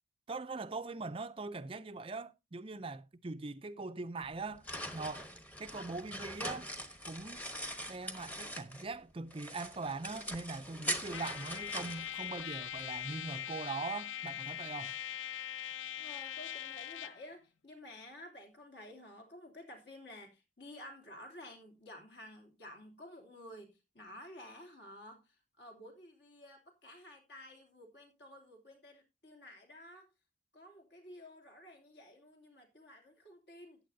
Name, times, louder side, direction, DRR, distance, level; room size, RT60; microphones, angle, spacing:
voice 1, 0.3-4.6 4.9-5.3 5.6-6.7 7.1-7.4 7.9-15.0, right 3 dB, 30° right, 0.5 m, -41 dB
sound 1, 4.2-9.0 9.3-12.8, equal, 10° left, 1.0 m, -42 dB
Trumpet, 11.1-17.2, left 11 dB, 80° left, 0.4 m, -42 dB
voice 2, 16.0-30.1 30.5-33.8, left 1 dB, 60° left, 2.9 m, -52 dB
14.0 x 9.3 x 2.7 m
head